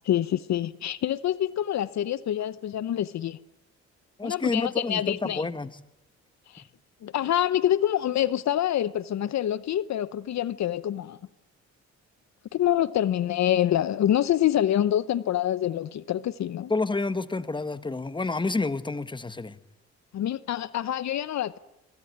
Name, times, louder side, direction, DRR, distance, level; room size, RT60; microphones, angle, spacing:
voice 1, 0.0-3.4 4.2-5.5 6.5-6.6 7.0-11.2 12.5-16.7 20.1-21.6, left 11 dB, 65° left, 0.9 m, -26 dB
voice 2, 4.2-5.7 16.7-19.6, left 3 dB, 15° left, 1.5 m, -29 dB
25.5 x 22.5 x 9.4 m
cardioid pair, 90°, 30 cm